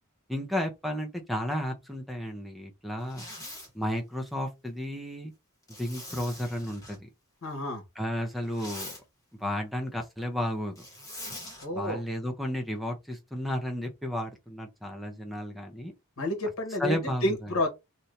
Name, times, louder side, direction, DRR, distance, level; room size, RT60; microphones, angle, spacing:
voice 1, 0.3-3.3 3.7-5.3 5.8-7.1 8.0-8.9 9.4-10.8 11.7-15.9 16.8-17.5, equal, ahead, 0.6 m, -33 dB
Zipper (clothing), 3.0-3.7 5.7-7.0 8.3-9.0 10.8-11.6, left 1 dB, 15° left, 1.3 m, -43 dB
voice 2, 7.4-7.8 11.6-12.0 16.2-17.7, left 1 dB, 70° left, 1.1 m, -30 dB
2.8 x 2.6 x 3.2 m
head